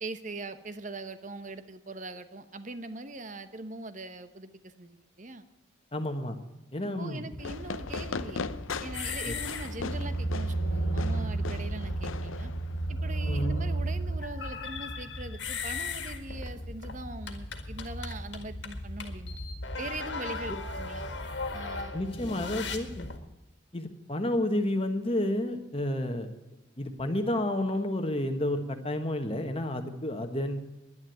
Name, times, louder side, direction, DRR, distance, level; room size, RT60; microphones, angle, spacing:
voice 1, 0.0-5.5 6.8-8.5 8.8-12.5 12.9-19.4 19.8-21.1 21.5-21.9, right 2 dB, 40° right, 10 dB, 1.0 m, -41 dB
voice 2, 5.9-6.4 6.7-7.2 9.2-9.3 13.3-13.5 21.9-23.1 23.7-26.3 26.8-30.6, left 1 dB, 30° left, 6 dB, 1.3 m, -30 dB
sound 1, 7.3-23.2, equal, 65° left, 1.9 m, -34 dB
Fireworks, 7.4-12.9, left 4 dB, 85° left, 0.7 m, -39 dB
11.0 x 10.5 x 9.3 m, 0.99 s
head